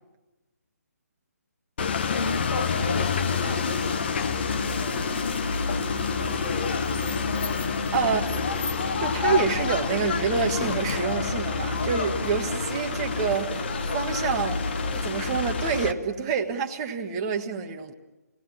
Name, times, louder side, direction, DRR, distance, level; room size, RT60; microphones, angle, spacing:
voice 1, 1.8-5.4 8.0-8.8, left 2 dB, 75° left, 1.9 m, -37 dB
sound 1, 1.8-15.9, left 5 dB, 40° left, 1.0 m, -28 dB
sound 2, 2.6-15.4, right 2 dB, 80° right, 0.8 m, -38 dB
voice 2, 9.0-14.7 15.0-17.9, right 6 dB, 20° right, 1.4 m, -27 dB
29.5 x 18.0 x 7.4 m
figure-of-eight pair, 140°, 9 cm